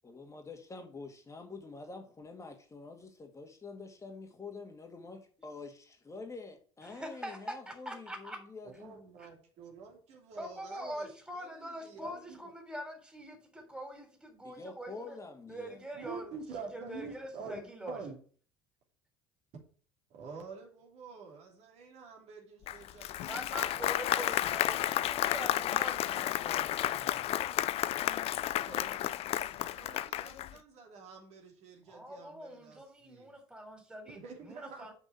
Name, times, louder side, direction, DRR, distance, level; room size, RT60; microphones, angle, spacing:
voice 1, 0.0-9.0 14.4-15.8, left 3 dB, 20° left, 1.9 m, -47 dB
voice 2, 6.8-8.4 9.2-9.3 10.4-15.2 15.5-16.3 16.7-18.0 23.2-27.4 31.9-34.2 34.4-34.9, equal, 5° right, 3.6 m, -44 dB
voice 3, 8.6-11.1 11.3-12.5 15.9-17.6 17.9-18.2 20.1-23.9 28.7-33.3 34.1-34.9, right 5 dB, 55° right, 3.0 m, -47 dB
Applause, 22.7-30.6, left 13 dB, 50° left, 0.5 m, -32 dB
6.6 x 5.9 x 7.4 m
figure-of-eight pair, 65°, 13 cm